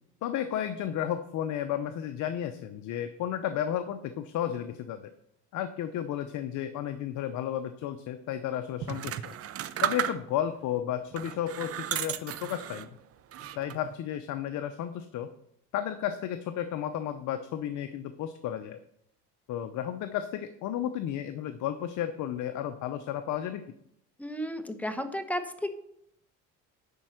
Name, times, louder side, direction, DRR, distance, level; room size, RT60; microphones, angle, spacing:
voice 1, 0.2-5.1 5.5-9.3 9.8-13.0 13.6-15.3 15.7-18.8 19.5-23.6, left 10 dB, 65° left, 9 dB, 0.7 m, -33 dB
sound 1, 8.8-10.5 11.1-12.9 13.3-13.9, right 11 dB, 45° right, 0.7 m, -34 dB
voice 2, 24.2-25.7, equal, 5° left, 8 dB, 1.0 m, -33 dB
10.0 x 4.5 x 6.4 m, 0.74 s
cardioid pair, 95°, 32 cm